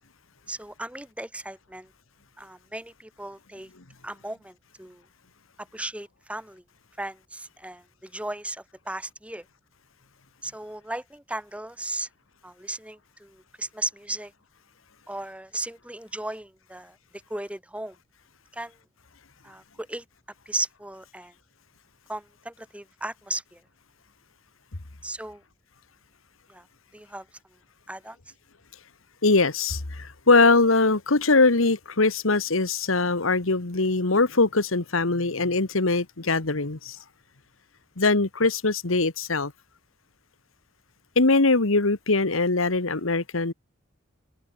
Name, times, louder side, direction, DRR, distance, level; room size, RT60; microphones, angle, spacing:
voice 1, 0.5-1.9 2.4-3.7 4.0-5.0 5.6-6.6 7.0-9.4 10.4-12.1 12.4-14.3 15.1-17.0 17.3-17.9 18.5-18.7 19.4-20.0 20.4-21.3 22.1-23.6 25.0-25.4 26.5-26.7 26.9-27.3 27.9-28.2, right 1 dB, 5° right, 1.8 m, -36 dB
voice 2, 29.2-37.0 38.0-39.5 41.1-43.5, left 3 dB, 85° left, 1.7 m, -22 dB
open air
head